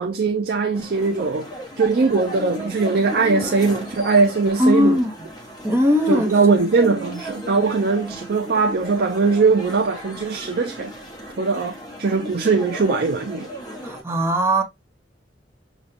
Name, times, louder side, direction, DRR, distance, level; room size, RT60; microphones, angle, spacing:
voice 1, 0.0-1.5 1.8-5.0 6.1-10.9 11.4-13.5, right 4 dB, 55° right, 0.5 m, -20 dB
sound 1, 0.7-14.0, equal, 25° left, 1.3 m, -36 dB
voice 2, 4.6-5.1 5.6-6.3 13.8-14.6, equal, 15° right, 1.0 m, -19 dB
6.5 x 2.4 x 2.8 m
head